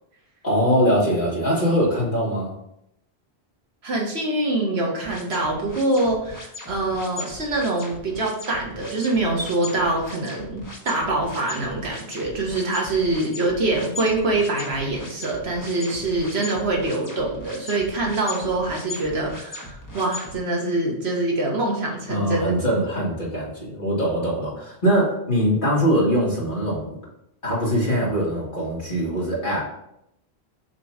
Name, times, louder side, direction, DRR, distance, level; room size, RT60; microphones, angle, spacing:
voice 1, 0.4-2.5 22.1-27.0 27.4-29.6, equal, 50° left, -6 dB, 2.4 m, -22 dB
voice 2, 3.8-22.5, right 2 dB, 70° right, 0 dB, 1.5 m, -24 dB
sound 1, 5.0-20.3, left 2 dB, 20° left, 1.1 m, -38 dB
6.8 x 3.0 x 4.8 m, 0.78 s
omnidirectional pair, 1.1 m